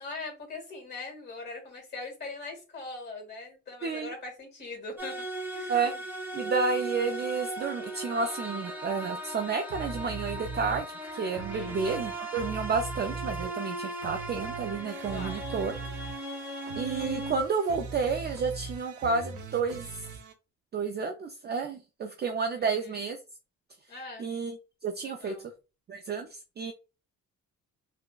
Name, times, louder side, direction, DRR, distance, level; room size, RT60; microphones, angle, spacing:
voice 1, 0.0-5.3 5.5-6.0 11.5-11.8 15.1-15.5 22.7-23.0 23.9-24.3 25.0-25.5, left 3 dB, 35° left, 1 dB, 1.7 m, -41 dB
sound 1, 5.0-17.4, right 1 dB, 5° right, 0.9 m, -37 dB
voice 2, 6.3-10.9 11.1-15.7 16.8-19.9 20.7-23.2 24.2-24.6 24.8-25.4 25.9-26.7, right 5 dB, 35° right, 4 dB, 0.4 m, -31 dB
sound 2, 9.7-10.8 11.3-13.7 14.0-20.3, right 4 dB, 75° right, 0.7 m, -41 dB
3.6 x 2.1 x 2.3 m, 0.31 s
cardioid pair, 90°, 30 cm